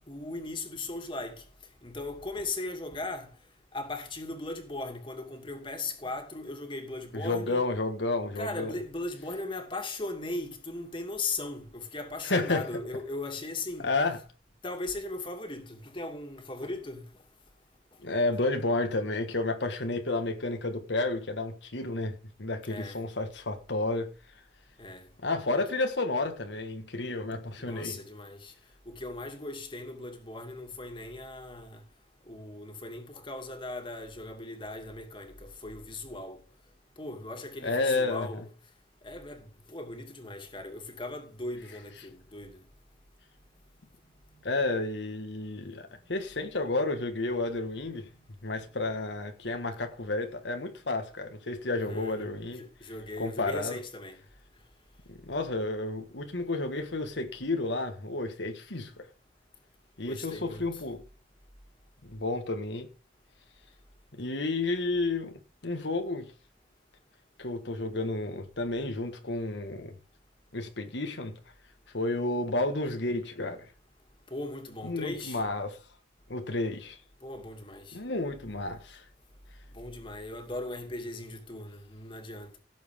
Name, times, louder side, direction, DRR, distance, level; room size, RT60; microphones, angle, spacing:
voice 1, 0.1-1.4 1.8-3.3 3.7-7.6 8.3-13.9 14.6-17.1 22.7-23.0 24.8-25.1 27.3-28.5 28.9-31.8 32.3-36.4 37.0-38.4 39.0-42.6 51.8-54.2 60.0-60.8 74.3-75.4 77.2-78.0 79.7-82.6, left 2 dB, 25° left, 2.5 m, -38 dB
voice 2, 7.1-8.7 12.2-12.7 13.8-14.2 18.0-24.1 25.2-28.0 37.6-38.4 44.4-48.1 48.4-52.6 53.2-53.8 55.1-59.1 60.0-61.0 62.0-62.9 64.1-66.3 67.4-69.9 70.5-71.3 71.9-73.7 74.8-75.8 76.3-77.0 77.9-79.0, left 2 dB, 75° left, 1.6 m, -31 dB
17.0 x 7.7 x 3.6 m
head